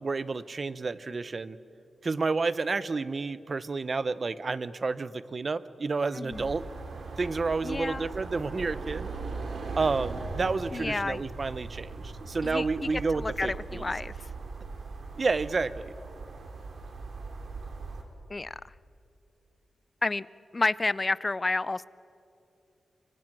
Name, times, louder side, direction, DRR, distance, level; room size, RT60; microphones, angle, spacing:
voice 1, 0.0-1.6 2.0-6.6 7.2-9.1 9.8-13.9 15.2-15.9, right 4 dB, 45° right, 15 dB, 0.8 m, -30 dB
voice 2, 6.1-6.5 7.6-8.1 10.7-11.2 12.4-12.9 13.2-14.3 18.3-18.6 20.0-20.3 20.5-21.8, left 3 dB, 30° left, 19 dB, 0.5 m, -30 dB
sound 1, 6.3-18.0, right 4 dB, 75° right, 3.3 m, -39 dB
29.5 x 24.5 x 6.1 m, 2.7 s
wide cardioid pair, 90°, 0 cm